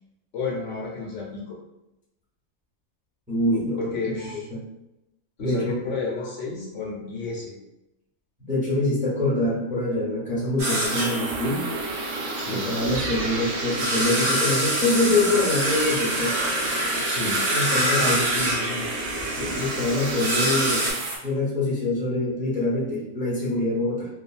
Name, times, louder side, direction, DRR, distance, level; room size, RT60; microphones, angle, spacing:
voice 1, 0.3-1.6 3.8-4.5 5.4-7.6 12.3-12.7 17.0-17.4 17.9-18.9, left 3 dB, 65° left, -3 dB, 1.0 m, -31 dB
voice 2, 3.3-3.9 4.5-4.6 5.4-5.7 8.4-11.6 12.5-16.3 17.5-18.2 19.3-20.9 21.2-24.1, left 2 dB, 10° right, -7 dB, 0.7 m, -25 dB
sound 1, 10.6-20.9, right 1 dB, 60° right, 1.1 m, -26 dB
sound 2, 10.8-21.2, right 3 dB, 80° right, 1.1 m, -32 dB
2.8 x 2.5 x 2.4 m, 0.92 s
omnidirectional pair, 1.4 m